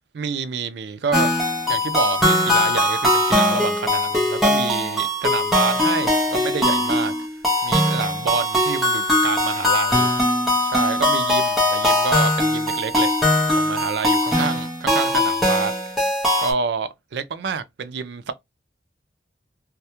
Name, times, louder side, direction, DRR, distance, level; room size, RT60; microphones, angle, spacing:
voice 1, 0.1-1.4 1.7-7.1 7.6-10.1 10.6-13.1 13.6-15.7 16.4-18.3, right 5 dB, 75° right, 0.4 m, -28 dB
sound 1, 1.1-16.5, left 1 dB, ahead, 0.5 m, -20 dB
2.2 x 2.1 x 2.8 m
head